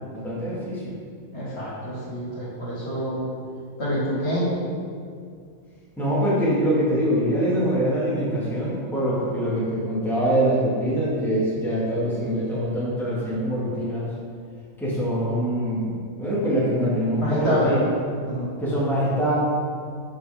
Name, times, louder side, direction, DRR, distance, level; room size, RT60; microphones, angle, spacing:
voice 1, 0.2-0.9 6.0-14.1 14.8-17.8 18.6-19.3, equal, ahead, -9 dB, 2.0 m, -24 dB
voice 2, 1.3-3.2 3.8-4.5 17.2-17.9 18.2-18.5, equal, 50° left, -8 dB, 2.5 m, -26 dB
11.5 x 5.2 x 3.6 m, 2.2 s
omnidirectional pair, 1.5 m